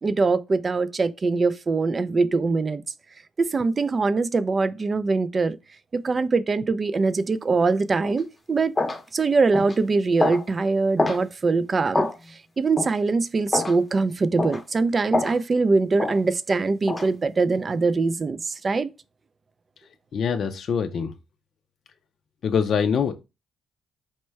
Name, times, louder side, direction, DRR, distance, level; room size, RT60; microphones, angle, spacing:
voice 1, 0.0-2.8 3.4-5.6 5.9-8.7 9.1-12.1 12.6-18.9, right 3 dB, 35° right, 0.3 m, -23 dB
sound 1, 8.0-8.2 8.8-9.0 9.5-9.8 10.2-10.4 11.0-11.2 11.9-12.2 12.8-12.9 13.5-13.8 14.4-14.6 15.1-15.4 16.0-16.2 16.9-17.1, left 2 dB, 20° left, 0.8 m, -25 dB
voice 2, 20.1-21.1 22.4-23.1, left 6 dB, 60° left, 0.4 m, -24 dB
4.3 x 2.1 x 4.5 m
cardioid pair, 90°, 0 cm